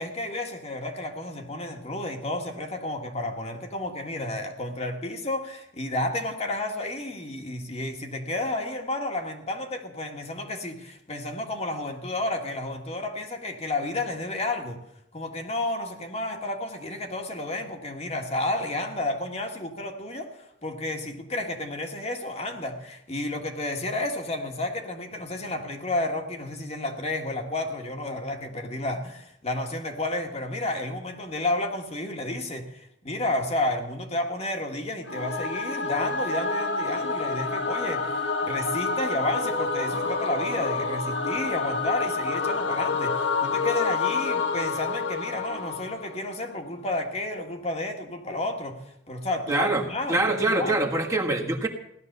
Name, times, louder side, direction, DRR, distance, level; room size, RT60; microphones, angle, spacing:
voice 1, 0.0-14.8 15.1-48.8 49.1-50.9, left 2 dB, 35° left, 4 dB, 1.7 m, -31 dB
Singing / Musical instrument, 35.1-46.3, left 4 dB, 65° left, 1.5 m, -28 dB
voice 2, 49.5-49.8 50.1-51.7, right 2 dB, 15° right, 1 dB, 1.5 m, -24 dB
17.0 x 12.0 x 6.7 m, 0.78 s
head